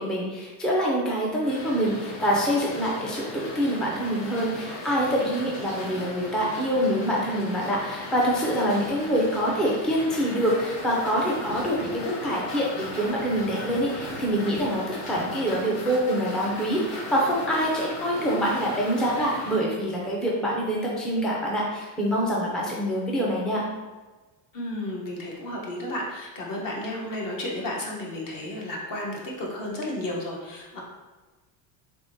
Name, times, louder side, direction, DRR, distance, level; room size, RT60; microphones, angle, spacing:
voice 1, 0.0-23.6, equal, ahead, -4 dB, 0.3 m, -25 dB
sound 1, 1.4-19.6, left 1 dB, 60° left, 1.2 m, -37 dB
voice 2, 24.5-30.8, left 1 dB, 45° left, -2 dB, 0.9 m, -33 dB
3.5 x 3.4 x 2.6 m, 1.2 s
cardioid pair, 135°, 48 cm